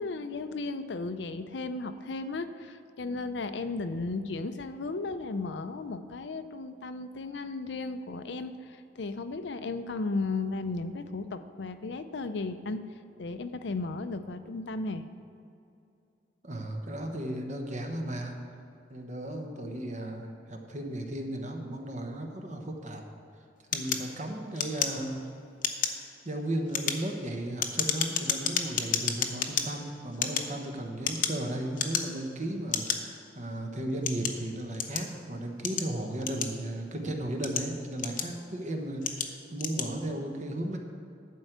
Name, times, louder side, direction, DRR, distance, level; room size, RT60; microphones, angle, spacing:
voice 1, 0.0-12.8 13.2-15.1, left 3 dB, 75° left, 10 dB, 0.5 m, -35 dB
voice 2, 16.4-18.4 18.9-23.0 23.7-25.3 26.2-40.8, right 1 dB, 45° right, 3 dB, 1.1 m, -35 dB
sound 1, 23.7-25.3 25.6-26.0 26.6-29.7 30.1-31.4 31.7-32.3 32.7-33.0 33.6-35.1 35.6-36.8 37.3-38.5 39.0-39.3 39.6-39.9, left 7 dB, 50° left, 0.8 m, -31 dB
11.5 x 4.6 x 8.0 m, 2.5 s
head